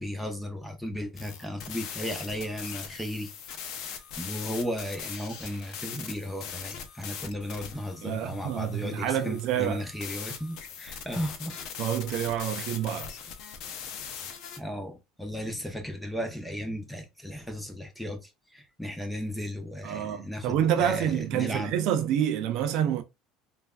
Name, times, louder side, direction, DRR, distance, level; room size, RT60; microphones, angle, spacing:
voice 1, 0.0-3.3 3.7-11.6 14.6-21.7, equal, 5° left, 0.7 m, -35 dB
sound 1, 1.1-14.6, left 8 dB, 65° left, 0.5 m, -41 dB
voice 2, 8.0-9.8 11.8-13.1 19.8-23.0, right 10 dB, 65° right, 0.4 m, -28 dB
3.2 x 2.4 x 2.2 m
supercardioid pair, 115°, 0 cm